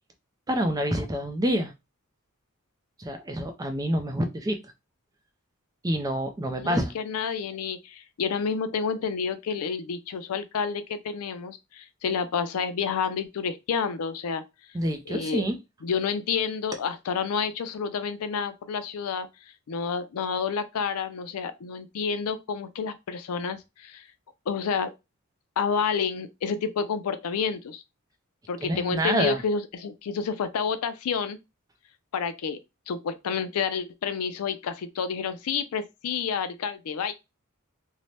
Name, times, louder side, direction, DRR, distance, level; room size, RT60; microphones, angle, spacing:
voice 1, 0.5-1.7 3.0-4.6 5.8-6.9 14.7-15.6 28.6-29.4, equal, 15° right, 0.4 m, -27 dB
voice 2, 6.5-14.4 15.1-15.4 15.8-19.3 19.7-24.0 24.5-24.9 25.6-27.8 28.5-31.4 32.1-32.6 32.9-37.1, left 6 dB, 85° left, 0.4 m, -29 dB
2.6 x 2.1 x 3.2 m
head